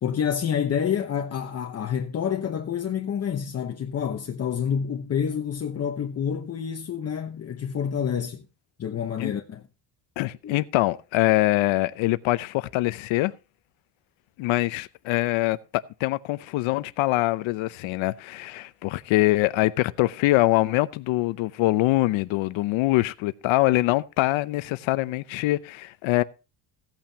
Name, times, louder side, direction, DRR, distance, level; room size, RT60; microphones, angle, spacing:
voice 1, 0.0-8.5 8.8-9.6 10.4-10.6, left 8 dB, 35° left, 0.9 m, -28 dB
voice 2, 10.2-13.3 14.4-26.2, left 18 dB, 90° left, 0.8 m, -24 dB
16.0 x 9.0 x 2.8 m
cardioid pair, 140°, 46 cm